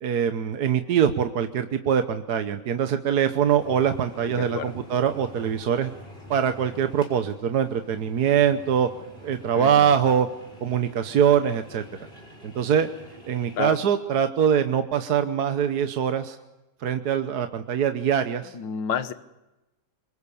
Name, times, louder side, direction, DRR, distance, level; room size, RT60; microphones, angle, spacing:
voice 1, 0.0-5.9 6.3-8.9 9.2-10.3 10.6-11.8 12.4-12.9 13.3-16.4 16.8-18.5, right 8 dB, 60° right, 8 dB, 1.4 m, -23 dB
sound 1, 3.4-13.7, equal, 30° left, 5.5 m, -46 dB
voice 2, 4.3-4.7 9.6-9.9 13.6-13.8 18.5-19.1, left 7 dB, 70° left, 11 dB, 1.8 m, -30 dB
25.5 x 22.5 x 7.0 m, 0.99 s
omnidirectional pair, 2.1 m